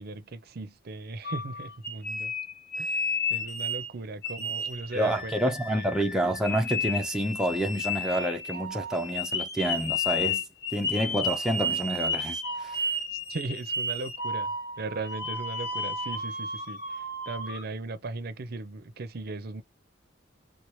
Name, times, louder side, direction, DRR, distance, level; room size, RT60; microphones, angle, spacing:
voice 1, 0.0-2.3 2.8-3.0 3.3-5.9 13.1-19.6, right 3 dB, 55° right, 0.6 m, -38 dB
sound 1, 1.2-3.9 4.2-17.6, left 2 dB, 55° left, 1.2 m, -32 dB
voice 2, 4.9-10.4 10.7-12.9, right 1 dB, 5° right, 0.5 m, -28 dB
4.3 x 2.0 x 3.1 m
head